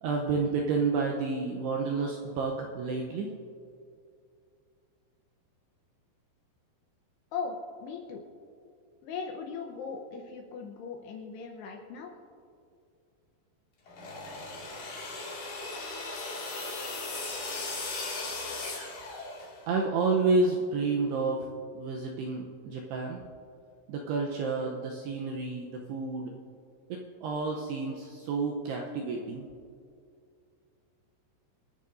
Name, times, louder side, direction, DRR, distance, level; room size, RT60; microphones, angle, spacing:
voice 1, 0.0-3.3 19.7-21.5 21.8-23.2 23.9-26.3 26.9-29.5, right 4 dB, 90° right, 0 dB, 2.4 m, -30 dB
voice 2, 7.3-8.2 9.0-12.1, left 5 dB, 80° left, 2 dB, 2.5 m, -38 dB
sound 1, 13.9-19.7, left 3 dB, 50° left, 2.9 m, -37 dB
27.5 x 9.4 x 2.6 m, 2.3 s
omnidirectional pair, 5.6 m